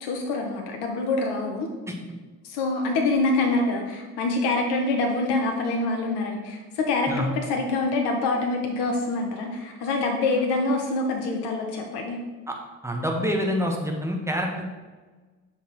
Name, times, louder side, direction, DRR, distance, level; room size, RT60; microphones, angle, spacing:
voice 1, 0.0-1.7 2.4-12.2, left 3 dB, 60° left, 2 dB, 1.0 m, -25 dB
voice 2, 12.8-14.7, equal, 5° right, 1 dB, 1.4 m, -26 dB
5.9 x 4.3 x 4.6 m, 1.3 s
hypercardioid pair, 55°, 44 cm